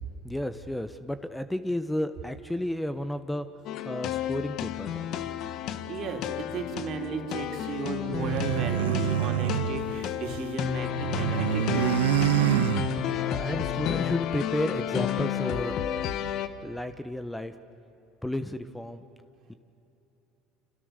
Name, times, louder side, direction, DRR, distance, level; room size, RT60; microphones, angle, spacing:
voice 1, 0.2-3.5 3.8-5.2 13.1-15.8 16.6-17.5 18.2-19.1 19.5-19.6, left 1 dB, 5° left, 11 dB, 1.2 m, -32 dB
sound 1, 3.7-16.5, left 10 dB, 60° left, 1.4 m, -31 dB
voice 2, 5.9-12.0, right 5 dB, 55° right, 3 dB, 3.5 m, -35 dB
sound 2, 8.1-10.5 10.8-13.4, right 14 dB, 85° right, 0.7 m, -27 dB
30.0 x 27.5 x 6.7 m, 2.9 s
hypercardioid pair, 75°, 0 cm